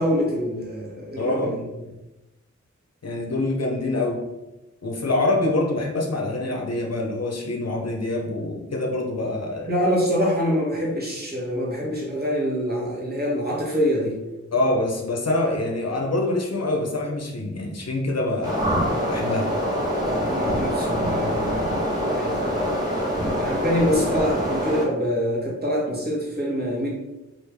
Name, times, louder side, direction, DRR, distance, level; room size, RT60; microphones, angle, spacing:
voice 1, 0.0-1.6 5.1-5.3 9.7-14.2 20.0-21.8 22.1-22.4 23.2-26.9, equal, 35° right, -4 dB, 1.2 m, -25 dB
voice 2, 1.2-1.6 3.0-4.3 4.8-9.7 14.5-18.7 19.1-19.5, left 2 dB, 60° left, 0 dB, 0.6 m, -25 dB
sound 1, 18.4-24.8, equal, 15° right, 1.3 m, -25 dB
3.2 x 2.5 x 3.3 m, 1.0 s
wide cardioid pair, 50°, 29 cm